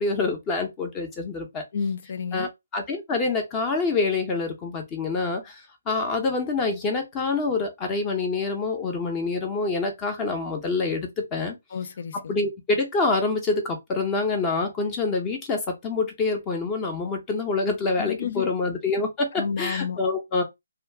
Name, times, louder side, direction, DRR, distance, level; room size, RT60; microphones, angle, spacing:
voice 1, 0.0-1.6 2.3-11.6 12.1-20.4, left 3 dB, 20° left, 0.8 m, -26 dB
voice 2, 1.7-2.5 11.7-12.3 18.0-18.5 19.4-20.0, left 6 dB, 50° left, 0.5 m, -30 dB
2.4 x 2.4 x 3.4 m
figure-of-eight pair, 145°, 0 cm